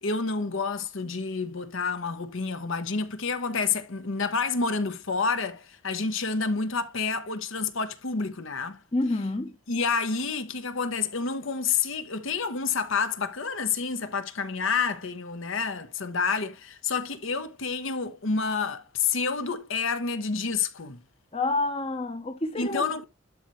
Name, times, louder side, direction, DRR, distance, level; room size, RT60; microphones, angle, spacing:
voice 1, 0.0-8.8 9.7-21.0 22.6-23.0, left 5 dB, 65° left, 1.0 m, -29 dB
voice 2, 8.9-9.6 21.3-23.0, left 2 dB, 25° left, 0.8 m, -28 dB
12.0 x 4.1 x 3.1 m
head